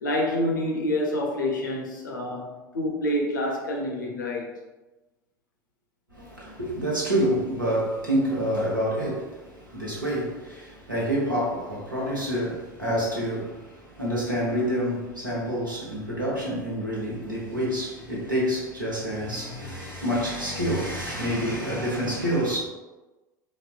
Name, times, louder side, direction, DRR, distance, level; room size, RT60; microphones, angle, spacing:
voice 1, 0.0-4.5, left 1 dB, 80° left, 0.7 m, -27 dB
voice 2, 6.1-22.6, equal, 90° right, 0.9 m, -28 dB
4.2 x 2.1 x 2.4 m
figure-of-eight pair, 75°, 10 cm